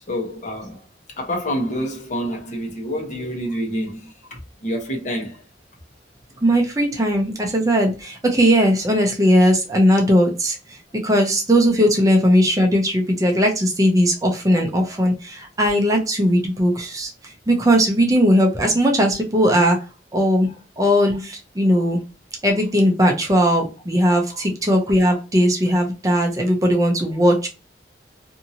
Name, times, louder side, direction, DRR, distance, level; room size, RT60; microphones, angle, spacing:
voice 1, 0.1-0.9 1.2-5.4 10.9-11.0 20.5-20.6 24.3-24.4, equal, 45° left, 0.9 m, -28 dB
voice 2, 6.4-19.8 20.1-20.5 20.8-22.0 22.4-27.5, equal, 20° right, 0.5 m, -18 dB
2.6 x 2.6 x 2.7 m
head